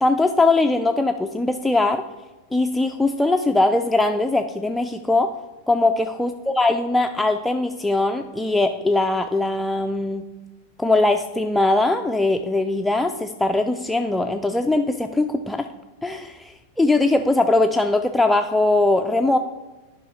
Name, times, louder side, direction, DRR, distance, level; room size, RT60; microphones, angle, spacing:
voice 1, 0.0-2.0 2.5-5.3 5.7-10.2 10.8-15.7 16.0-19.4, left 2 dB, 5° left, 4 dB, 0.4 m, -21 dB
11.0 x 5.4 x 3.3 m, 1.2 s
figure-of-eight pair, 90°, 0 cm